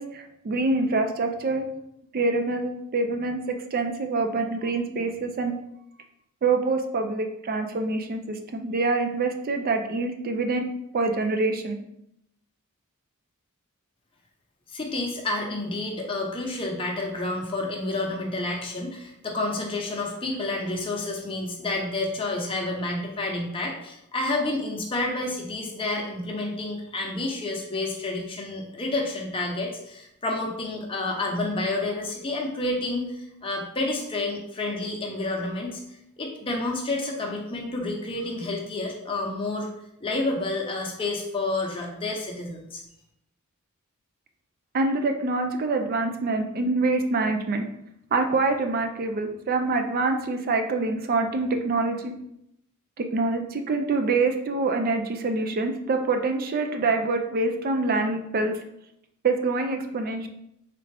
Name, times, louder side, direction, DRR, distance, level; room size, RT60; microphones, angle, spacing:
voice 1, 0.0-1.7 2.1-3.4 3.7-5.5 6.4-10.7 10.9-11.8 44.7-47.6 48.1-52.1 53.0-58.5 59.2-60.3, right 3 dB, 40° right, 6 dB, 0.4 m, -25 dB
voice 2, 14.7-35.8 36.2-39.7 40.0-42.8, left 2 dB, 25° left, 0 dB, 0.7 m, -29 dB
3.6 x 3.3 x 3.3 m, 0.79 s
head